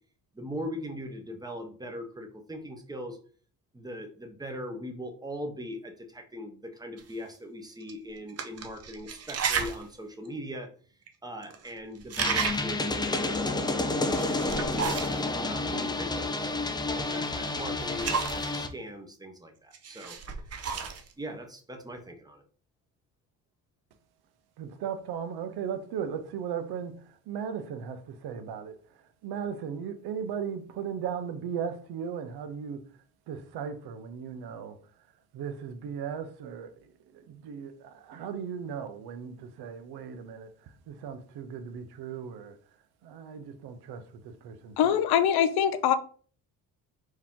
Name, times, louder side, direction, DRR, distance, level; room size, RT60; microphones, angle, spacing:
voice 1, 0.3-3.2 3.7-10.7 11.2-16.5 16.9-20.2 20.7-22.4, equal, 10° right, 0.8 m, -40 dB
sound 1, 7.0-7.1 7.8-7.9 8.3-9.8 10.2-10.3 11.1-11.2 11.4-11.7 12.0-12.8 13.9-15.2 17.1-18.6 19.7-21.1, right 6 dB, 40° right, 0.7 m, -33 dB
sound 2, 12.2-18.7, left 2 dB, 10° left, 0.4 m, -30 dB
voice 2, 24.6-32.9 33.3-34.8 35.3-42.6 43.0-45.0, right 7 dB, 80° right, 0.7 m, -37 dB
voice 3, 44.8-46.0, left 9 dB, 80° left, 0.6 m, -23 dB
4.6 x 2.9 x 3.6 m
cardioid pair, 125°, 38 cm